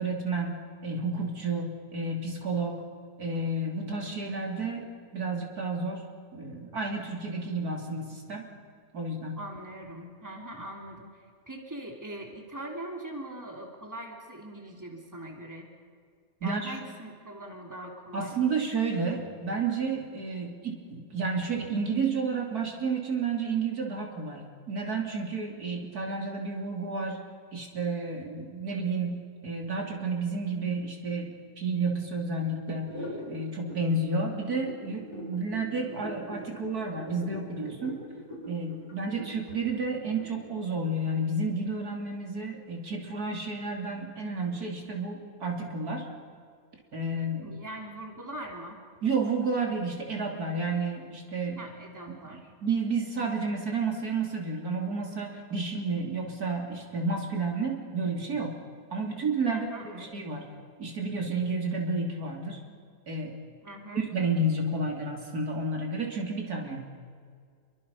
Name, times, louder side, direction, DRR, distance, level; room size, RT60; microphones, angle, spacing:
voice 1, 0.0-2.8 3.2-4.9 5.1-6.0 6.3-8.5 8.9-9.4 16.4-16.7 18.1-27.2 27.5-32.9 33.3-38.0 38.5-46.0 46.9-47.5 49.0-51.6 52.3-58.5 58.9-59.7 59.9-60.4 60.8-62.6 63.1-63.4 63.9-67.0, right 3 dB, 70° right, 1 dB, 3.7 m, -31 dB
voice 2, 9.4-15.7 16.4-18.4 47.4-48.8 51.6-52.5 59.5-60.1 63.6-64.1, right 1 dB, 10° right, 1 dB, 2.9 m, -41 dB
sound 1, 32.8-40.6, equal, 15° left, 7.0 m, -42 dB
28.0 x 23.5 x 5.5 m, 2.1 s
omnidirectional pair, 1.7 m